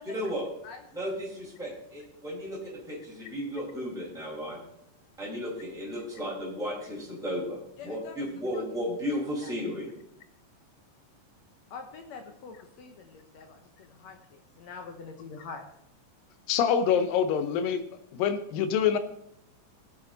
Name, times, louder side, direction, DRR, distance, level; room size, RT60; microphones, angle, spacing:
voice 1, 0.0-0.5 0.9-4.6 5.2-9.9, equal, ahead, -5 dB, 4.4 m, -34 dB
voice 2, 7.8-8.1 8.5-8.6 9.4-9.5 11.7-15.6, left 5 dB, 65° left, 5 dB, 1.9 m, -45 dB
voice 3, 16.5-17.8 18.1-19.0, left 7 dB, 90° left, 11 dB, 2.6 m, -25 dB
18.5 x 8.7 x 4.0 m, 0.77 s
omnidirectional pair, 3.9 m